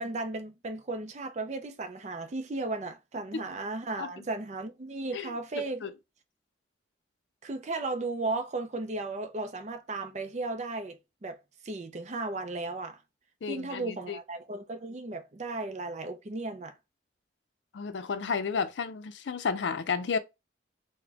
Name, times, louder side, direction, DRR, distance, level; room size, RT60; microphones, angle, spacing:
voice 1, 0.0-5.8 7.4-11.4 11.6-13.0 13.5-16.7, right 2 dB, 40° right, 0.4 m, -35 dB
voice 2, 5.1-5.9 13.4-14.2 17.7-20.2, left 5 dB, 80° left, 0.4 m, -32 dB
4.0 x 2.1 x 2.7 m
head